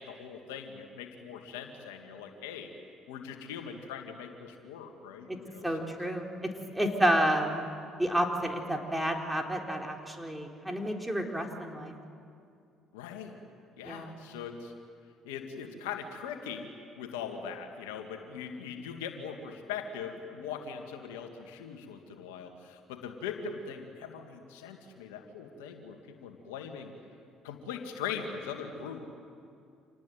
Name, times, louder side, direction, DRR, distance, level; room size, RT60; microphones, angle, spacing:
voice 1, 0.0-2.7 3.1-5.9 12.9-13.4 13.8-14.7 15.2-16.7 16.9-26.9 27.4-29.0, left 7 dB, 85° left, 4 dB, 2.2 m, -41 dB
voice 2, 5.6-7.7 8.0-11.9 13.8-14.1, equal, 5° right, 2 dB, 4.2 m, -30 dB
27.5 x 19.0 x 9.3 m, 2.4 s
hypercardioid pair, 60°, 0 cm